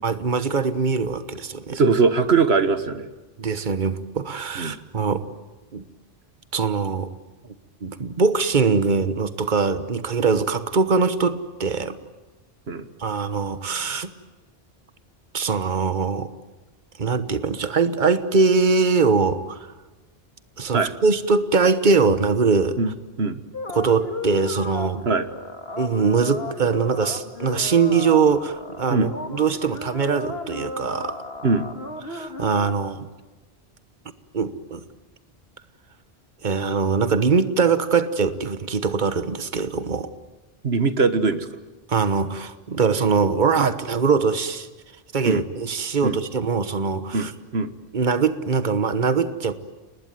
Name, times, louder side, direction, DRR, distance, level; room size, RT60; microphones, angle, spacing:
voice 1, 0.0-1.8 3.4-5.2 5.7-5.8 6.5-7.1 7.8-12.0 13.0-14.1 15.3-16.3 17.0-19.7 20.6-22.8 23.7-25.0 25.8-31.2 32.1-33.1 34.3-34.8 36.4-40.1 41.9-44.7 45.1-47.3 47.9-49.5, right 5 dB, 50° right, 12 dB, 1.4 m, -22 dB
voice 2, 1.7-3.1 4.6-4.8 12.7-12.9 20.7-20.9 22.8-22.9 23.2-23.4 25.1-25.3 28.9-29.1 31.4-31.7 40.6-41.5 45.2-45.4 46.0-46.2 47.1-47.7, right 4 dB, 75° right, 11 dB, 1.8 m, -21 dB
sound 1, 23.5-32.7, left 3 dB, 75° left, 2.4 m, -34 dB
29.5 x 20.5 x 9.3 m, 1.2 s
omnidirectional pair, 1.1 m